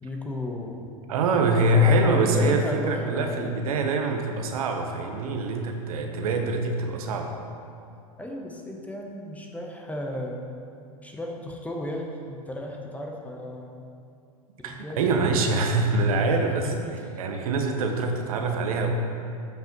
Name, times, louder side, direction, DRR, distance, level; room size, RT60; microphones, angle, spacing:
voice 1, 0.0-0.8 1.6-3.4 8.2-10.4 11.0-13.9 14.6-15.7 16.6-16.8 17.1-17.2, left 1 dB, 5° left, 0 dB, 0.9 m, -34 dB
voice 2, 1.1-7.3 14.6-16.7 17.2-18.9, right 2 dB, 70° right, 4 dB, 0.9 m, -24 dB
11.5 x 5.7 x 3.0 m, 2.5 s
hypercardioid pair, 95°, 19 cm